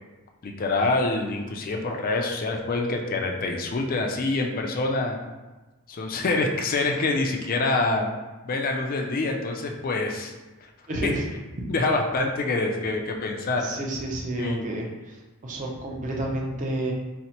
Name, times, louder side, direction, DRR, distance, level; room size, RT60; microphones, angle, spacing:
voice 1, 0.4-5.2 5.9-8.1 8.4-10.3 11.0-11.1 11.7-13.7 14.4-14.7, left 3 dB, 40° left, 2 dB, 0.4 m, -26 dB
voice 2, 10.9-11.2 11.6-11.7 13.6-16.9, right 1 dB, 35° right, -1 dB, 0.5 m, -30 dB
4.0 x 2.0 x 2.8 m, 1.2 s
head